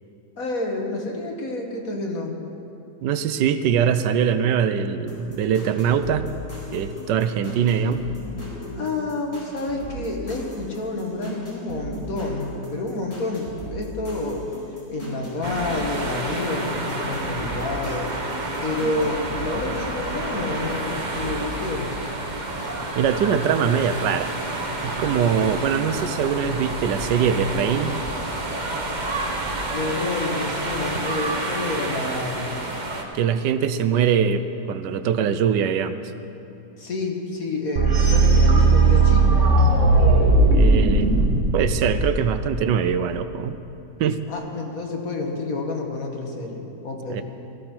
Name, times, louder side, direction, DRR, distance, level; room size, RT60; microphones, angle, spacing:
voice 1, 0.4-2.4 8.8-14.4 14.9-18.1 18.6-22.0 29.7-32.7 36.8-39.5 44.3-47.2, left 2 dB, 55° left, 1 dB, 1.9 m, -29 dB
voice 2, 3.0-6.3 6.7-8.0 22.9-24.3 24.8-27.9 33.1-36.0 40.5-43.6 44.0-44.2 47.1-47.2, right 7 dB, 85° right, 11 dB, 1.3 m, -22 dB
sound 1, 5.0-20.8 21.1-22.7, equal, 25° left, 4.7 m, -37 dB
sound 2, 15.4-33.0, right 2 dB, 30° right, 1.1 m, -29 dB
sound 3, 37.8-42.7, right 3 dB, 50° right, 1.6 m, -17 dB
17.0 x 14.0 x 4.4 m, 2.9 s
omnidirectional pair, 1.8 m